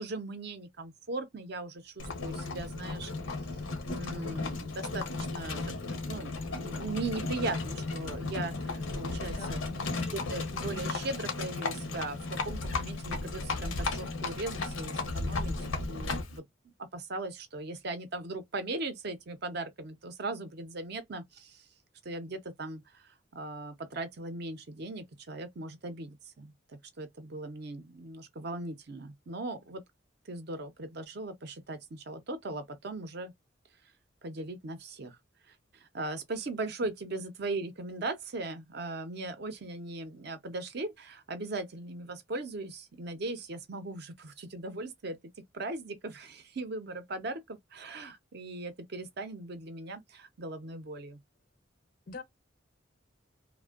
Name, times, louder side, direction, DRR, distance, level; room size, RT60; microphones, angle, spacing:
voice 1, 0.0-3.1 3.9-5.6 6.1-9.6 10.0-16.4 16.9-21.6 22.0-29.8 30.3-33.3 34.2-35.2 35.5-45.2 45.5-51.2, right 2 dB, 55° right, 0.5 m, -39 dB
Livestock farm animals working animals, 2.0-16.4, left 3 dB, 85° left, 0.7 m, -35 dB
sound 1, 6.0-11.1 15.1-15.2, left 1 dB, 10° right, 0.6 m, -53 dB
voice 2, 9.3-10.2 36.8-36.9 52.1-52.2, left 3 dB, 45° left, 0.4 m, -43 dB
2.5 x 2.1 x 2.3 m
head